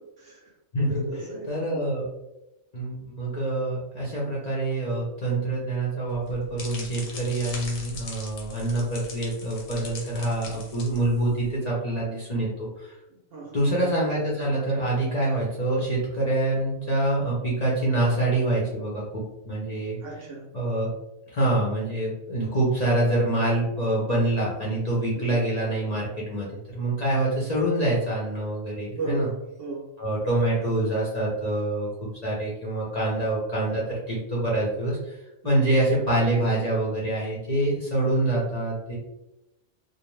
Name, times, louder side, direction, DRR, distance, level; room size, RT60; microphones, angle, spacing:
voice 1, 0.2-0.5 0.9-1.9 13.1-13.7 20.0-20.4 25.1-25.4 28.9-29.8 35.4-35.8, right 3 dB, 60° right, -1 dB, 0.7 m, -35 dB
voice 2, 0.7-1.1 1.5-2.1 2.7-13.0 13.5-20.0 20.5-20.9 21.3-29.3 30.0-35.2 35.4-39.0, right 1 dB, 40° left, -5 dB, 0.6 m, -26 dB
sound 1, 6.1-11.5, left 3 dB, 80° left, 1.1 m, -40 dB
2.5 x 2.1 x 3.0 m, 0.91 s
omnidirectional pair, 1.3 m